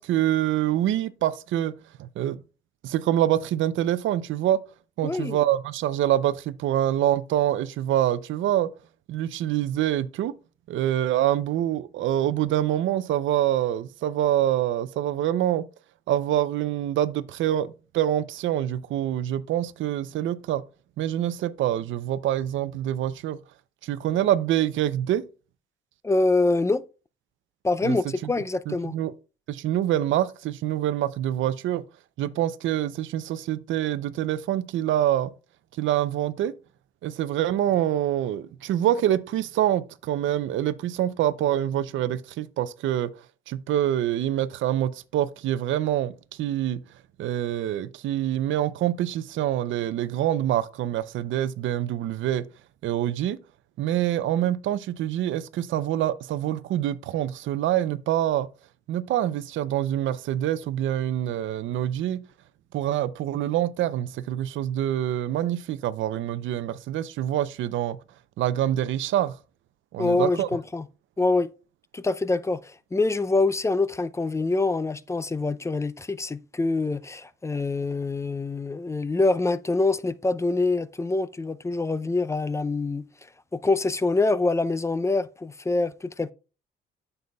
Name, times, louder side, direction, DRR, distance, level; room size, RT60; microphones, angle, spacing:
voice 1, 0.0-1.7 2.0-2.4 2.8-4.6 5.0-8.7 9.1-10.3 10.7-15.6 16.1-20.6 21.0-23.4 23.8-25.2 27.8-28.0 28.2-28.3 28.7-29.1 29.5-31.8 32.2-35.3 35.8-36.5 37.0-43.1 43.5-46.8 47.2-52.4 52.8-53.4 53.8-58.5 58.9-62.2 62.7-68.0 68.4-69.4 69.9-70.5, right 12 dB, 75° right, 0.6 m, -25 dB
voice 2, 5.0-5.4 26.0-26.8 27.6-28.9 70.0-70.9 71.2-71.5 71.9-83.1 83.5-86.3, left 3 dB, 15° left, 0.4 m, -25 dB
9.3 x 6.8 x 2.3 m
cardioid pair, 90°, 20 cm